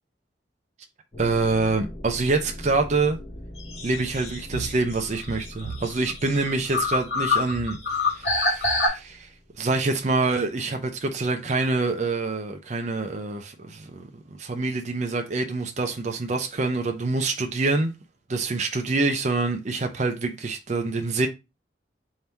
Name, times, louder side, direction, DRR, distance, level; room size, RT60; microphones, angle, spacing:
sound 1, 1.1-10.6, left 1 dB, 35° left, 0.7 m, -42 dB
voice 1, 1.2-3.2 3.8-9.3 9.6-14.0 14.3-17.9 18.3-21.3, right 3 dB, 40° right, 0.5 m, -26 dB
sound 2, 3.6-8.9, left 3 dB, 60° left, 1.9 m, -27 dB
3.4 x 2.7 x 4.2 m
head